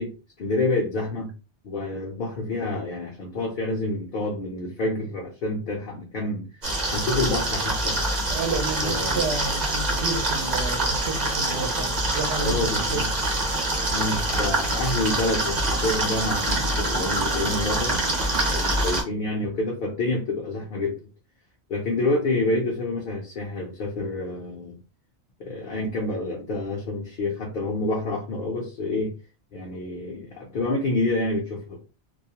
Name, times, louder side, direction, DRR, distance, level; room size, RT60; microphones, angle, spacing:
voice 1, 0.0-1.3 1.6-6.5 6.9-8.0 8.8-9.3 12.4-13.1 13.9-17.9 18.5-21.0 21.7-24.8 25.4-29.2 29.5-31.8, left 2 dB, 60° left, 0.7 m, -28 dB
sound 1, 6.6-19.0, right 2 dB, 45° right, 0.8 m, -25 dB
voice 2, 8.3-13.0, right 3 dB, 80° right, 0.8 m, -31 dB
2.3 x 2.1 x 2.8 m
omnidirectional pair, 1.1 m